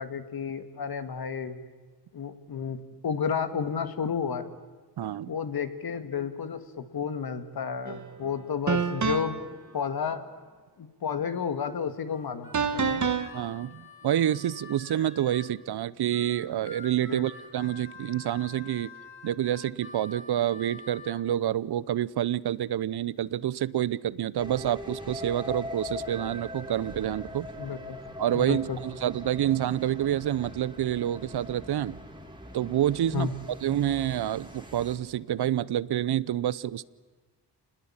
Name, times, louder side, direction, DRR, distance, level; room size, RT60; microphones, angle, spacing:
voice 1, 0.0-1.6 2.1-2.8 3.0-4.5 5.3-9.4 9.7-10.2 10.8-13.1 17.1-17.2 27.6-28.0 28.3-28.8 33.1-33.3, left 6 dB, 60° left, 9 dB, 2.2 m, -31 dB
voice 2, 5.0-5.3 13.3-18.9 19.2-27.5 28.2-32.0 32.5-33.3 33.6-36.9, right 11 dB, 65° right, 20 dB, 0.8 m, -28 dB
sound 1, 7.9-8.0 8.7-9.5 12.5-13.3, right 5 dB, 45° right, 1.8 m, -27 dB
Harmonica, 12.1-15.5 16.1-21.2, left 4 dB, 30° left, 6.7 m, -48 dB
sound 2, 24.3-35.0, left 1 dB, 10° right, 3.4 m, -41 dB
28.0 x 20.5 x 8.9 m, 1.4 s
cardioid pair, 85°, 42 cm